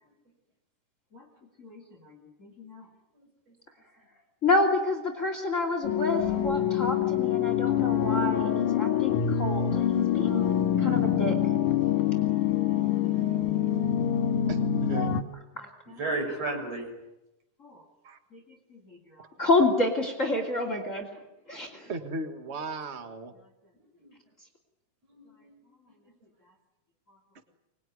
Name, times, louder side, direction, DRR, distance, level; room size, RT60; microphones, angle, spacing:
voice 1, 1.6-2.9 4.4-10.5 10.8-11.4 15.6-16.0 17.6-17.8 18.3-18.4 18.7-21.1 21.5-21.9, left 2 dB, 25° left, 4 dB, 2.8 m, -29 dB
sound 1, 5.8-15.2, left 10 dB, 75° left, 3.0 m, -25 dB
voice 2, 14.5-15.1 18.0-18.2 21.9-23.3, right 3 dB, 85° right, 8 dB, 0.5 m, -36 dB
voice 3, 15.9-16.9 21.7-21.9 24.0-24.1 25.1-25.6, right 2 dB, 50° right, 2 dB, 6.8 m, -35 dB
24.5 x 21.0 x 9.7 m, 0.93 s
omnidirectional pair, 3.7 m